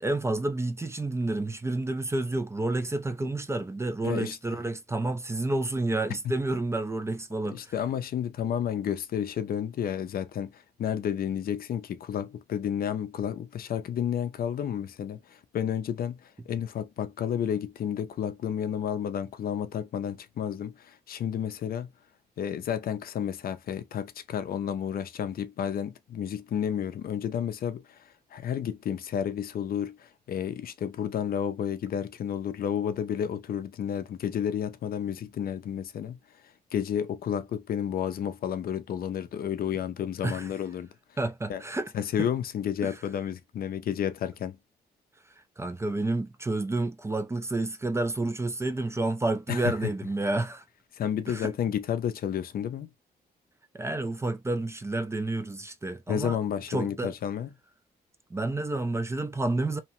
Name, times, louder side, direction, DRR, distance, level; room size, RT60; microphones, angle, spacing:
voice 1, 0.0-7.7 40.2-40.5 41.2-41.9 42.2-42.3 42.8-42.9 45.6-50.6 51.3-51.5 53.7-56.4 56.7-57.1 58.3-59.8, right 2 dB, 15° right, 0.3 m, -30 dB
voice 2, 4.0-4.4 7.5-21.9 22.4-28.0 28.3-36.2 36.7-40.9 41.5-41.6 41.9-44.6 49.5-49.7 50.9-52.9 56.1-57.5, left 9 dB, 65° left, 0.4 m, -31 dB
2.8 x 2.1 x 2.9 m
cardioid pair, 120°, 17 cm